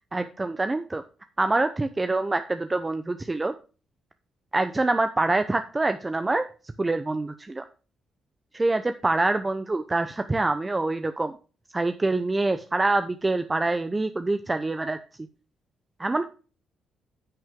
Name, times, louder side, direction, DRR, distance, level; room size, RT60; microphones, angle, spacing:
voice 1, 0.1-1.0 1.4-3.5 4.5-6.5 6.8-7.6 8.5-11.3 11.7-15.0 16.0-16.2, right 2 dB, 20° right, 9 dB, 0.7 m, -25 dB
11.0 x 6.1 x 3.7 m, 0.34 s
cardioid pair, 90°, 0 cm